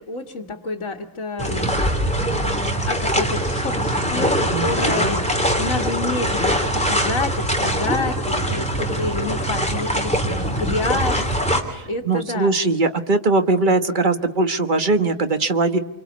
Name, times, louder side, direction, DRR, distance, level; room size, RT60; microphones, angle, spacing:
voice 1, 0.1-1.7 2.8-5.2 5.6-11.5 11.9-12.5, left 3 dB, 65° left, 5 dB, 2.0 m, -28 dB
sound 1, 1.4-11.6, equal, 5° left, 2.9 m, -22 dB
voice 2, 4.5-5.1 11.7-15.8, right 3 dB, 40° right, 8 dB, 1.4 m, -21 dB
27.0 x 25.0 x 8.3 m, 0.87 s
omnidirectional pair, 1.4 m